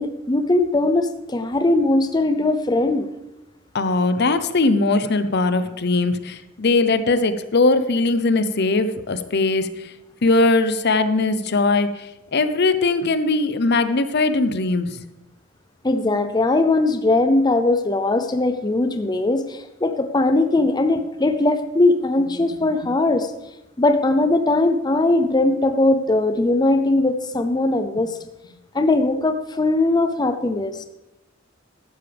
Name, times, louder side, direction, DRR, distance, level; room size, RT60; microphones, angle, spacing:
voice 1, 0.0-3.1 15.8-23.3 23.8-28.2 28.7-30.8, left 2 dB, 20° left, 8 dB, 0.6 m, -20 dB
voice 2, 3.7-9.9 10.2-15.0 22.5-22.6 28.0-28.1, left 3 dB, 55° left, 11 dB, 0.8 m, -20 dB
14.0 x 12.0 x 3.4 m, 0.95 s
head